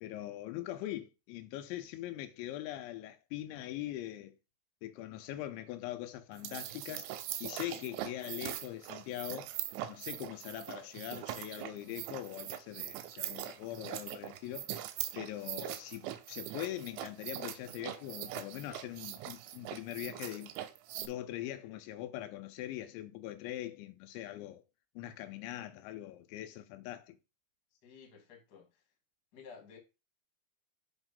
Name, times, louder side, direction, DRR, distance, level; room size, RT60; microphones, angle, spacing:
voice 1, 0.0-4.4 4.8-7.1 7.4-9.5 9.9-14.8 15.2-20.5 21.0-24.6 25.0-27.1, left 13 dB, 80° left, 3.0 m, -42 dB
sound 1, 6.3-21.1, right 13 dB, 85° right, 3.1 m, -42 dB
voice 2, 27.8-28.8 29.3-29.8, left 5 dB, 35° left, 1.6 m, -53 dB
8.1 x 3.5 x 5.3 m
omnidirectional pair, 5.4 m